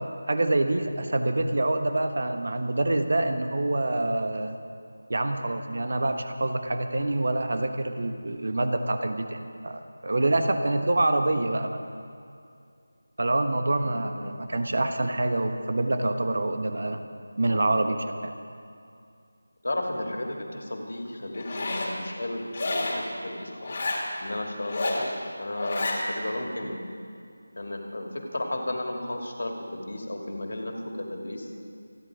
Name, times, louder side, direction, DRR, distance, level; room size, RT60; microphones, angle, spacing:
voice 1, 0.3-4.6 5.1-11.8 13.2-17.0 17.4-18.3, right 2 dB, 45° right, 7 dB, 1.1 m, -26 dB
voice 2, 13.8-14.4 19.6-23.7 24.2-25.1 25.4-26.8 27.6-31.6, left 1 dB, 55° left, 1 dB, 2.6 m, -34 dB
Zipper (clothing), 21.3-21.9 22.5-23.0 23.6-24.0 24.6-25.1 25.5-26.0, left 2 dB, 25° left, 2.1 m, -29 dB
27.5 x 10.5 x 5.0 m, 2.4 s
figure-of-eight pair, 180°, 0 cm